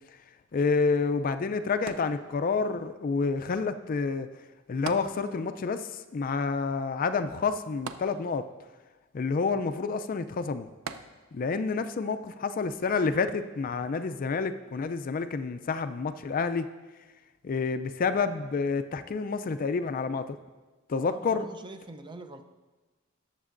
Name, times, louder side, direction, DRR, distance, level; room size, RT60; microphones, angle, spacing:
voice 1, 0.5-4.3 4.7-8.5 9.1-10.7 11.3-16.7 17.4-20.4 20.9-21.5, left 4 dB, 40° left, 11 dB, 0.4 m, -29 dB
sound 1, 1.9-2.8 4.9-5.7 6.0-6.1 7.9-8.7 10.9-11.6 12.3-12.4, right 5 dB, 85° right, 0.5 m, -41 dB
voice 2, 21.0-22.4, right 2 dB, 20° right, 7 dB, 0.5 m, -44 dB
19.0 x 7.4 x 2.5 m, 1.2 s
head